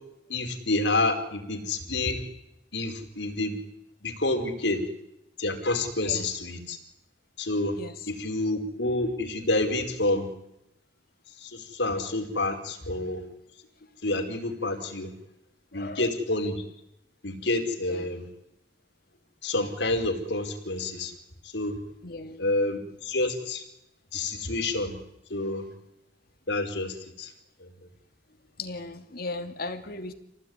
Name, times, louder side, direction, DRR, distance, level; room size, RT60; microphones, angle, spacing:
voice 1, 0.3-2.2 2.7-3.6 4.0-4.8 5.4-6.8 7.4-7.8 8.1-10.3 11.4-13.2 14.0-15.1 15.7-16.6 17.2-18.3 19.4-21.1 21.4-21.8 22.4-23.6 24.1-24.9 25.3-25.7 26.5-27.3 27.6-27.7, left 2 dB, 80° left, 4 dB, 4.9 m, -28 dB
voice 2, 15.7-16.1 17.9-18.1 22.0-22.4 28.6-30.1, left 2 dB, 60° left, 6 dB, 2.8 m, -37 dB
28.5 x 18.5 x 9.7 m, 0.86 s
head